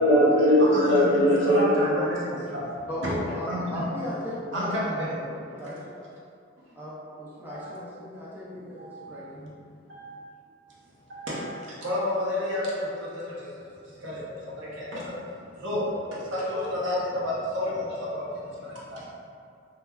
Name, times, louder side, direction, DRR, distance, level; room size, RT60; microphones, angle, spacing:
voice 1, 0.0-5.6, equal, 75° left, -8 dB, 0.8 m, -24 dB
voice 2, 0.6-0.9 1.5-2.6 3.0-3.1 3.5-3.8 4.5-5.1 7.5-7.7 8.8-9.5 9.9-10.2 11.1-19.1, left 1 dB, 75° right, -7 dB, 0.7 m, -31 dB
voice 3, 2.9-6.0 6.8-9.4, left 1 dB, 10° right, -9 dB, 0.5 m, -37 dB
3.1 x 2.2 x 2.3 m, 2.4 s
head